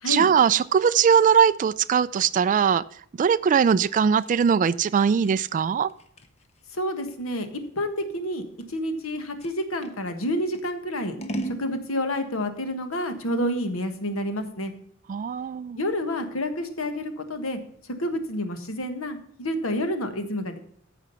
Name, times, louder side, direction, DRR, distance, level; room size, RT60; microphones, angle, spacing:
voice 1, 0.1-2.8 3.2-5.9 15.1-15.8, right 7 dB, 40° right, 13 dB, 0.3 m, -20 dB
Scissors, 3.8-10.0 10.5-11.7, right 1 dB, 30° left, 0.9 m, -39 dB
voice 2, 6.7-8.4 8.7-11.2 11.6-14.7 15.8-20.6, left 1 dB, 80° left, 8 dB, 1.5 m, -29 dB
14.0 x 5.0 x 5.5 m, 0.63 s
head